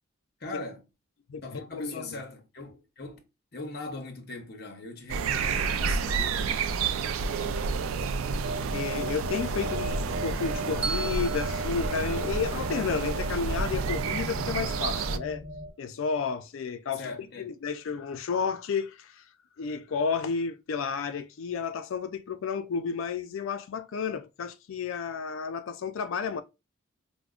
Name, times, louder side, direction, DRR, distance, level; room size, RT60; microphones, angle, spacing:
voice 1, 0.4-0.8 1.4-3.2 3.5-6.4 16.9-17.6, left 3 dB, 50° left, 0.8 m, -40 dB
voice 2, 1.3-2.2 8.7-15.4 15.8-17.1 17.4-19.2 19.6-26.4, left 5 dB, 75° left, 0.4 m, -32 dB
sound 1, 5.1-15.2, right 5 dB, 80° right, 0.4 m, -30 dB
sound 2, 8.4-15.7, equal, 40° right, 0.9 m, -37 dB
Bell, 10.8-13.0, right 4 dB, 5° right, 0.4 m, -38 dB
4.9 x 2.0 x 2.4 m
head